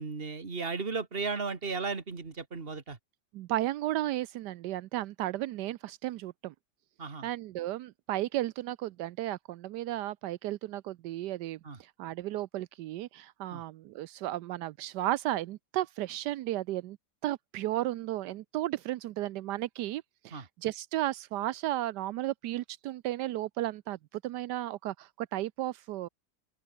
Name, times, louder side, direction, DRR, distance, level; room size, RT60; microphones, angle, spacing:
voice 1, 0.0-3.0 7.0-7.3 11.6-11.8 13.5-13.6 20.3-20.5, right 4 dB, 35° right, 2.2 m, -35 dB
voice 2, 3.3-6.5 7.2-17.0 17.2-26.1, right 15 dB, 85° right, 1.2 m, -34 dB
open air
omnidirectional pair, 1.8 m